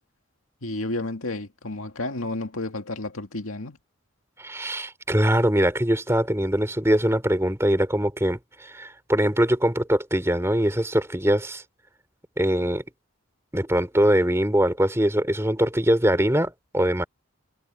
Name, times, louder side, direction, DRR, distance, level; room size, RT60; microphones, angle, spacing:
voice 1, 0.6-3.8, left 2 dB, 90° left, 2.2 m, -31 dB
voice 2, 4.4-11.6 12.4-12.8 13.5-17.0, right 1 dB, 15° right, 3.1 m, -22 dB
head